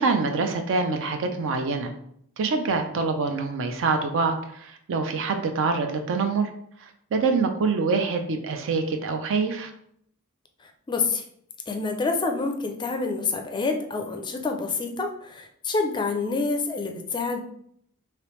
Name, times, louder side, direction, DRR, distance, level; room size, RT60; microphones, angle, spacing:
voice 1, 0.0-1.9 2.4-6.5 6.8-9.7, right 4 dB, 60° right, 6 dB, 0.4 m, -25 dB
voice 2, 10.9-11.2 11.7-17.4, left 4 dB, 20° left, 4 dB, 0.4 m, -27 dB
3.2 x 2.9 x 3.0 m, 0.69 s
head